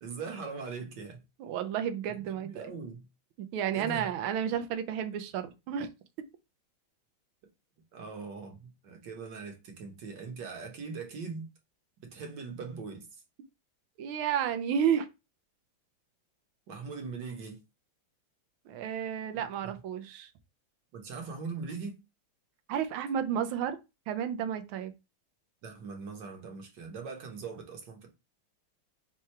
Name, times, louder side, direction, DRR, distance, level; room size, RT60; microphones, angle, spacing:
voice 1, 0.0-1.2 2.0-3.1 3.7-4.1 7.9-11.4 12.0-13.2 16.7-17.6 19.3-19.8 20.9-22.0 25.6-28.2, right 4 dB, 60° right, 1.6 m, -41 dB
voice 2, 1.4-2.6 3.4-5.9 14.0-15.1 18.7-20.3 22.7-23.8 24.1-24.9, right 8 dB, 90° right, 1.5 m, -31 dB
4.6 x 2.3 x 4.4 m
omnidirectional pair, 2.2 m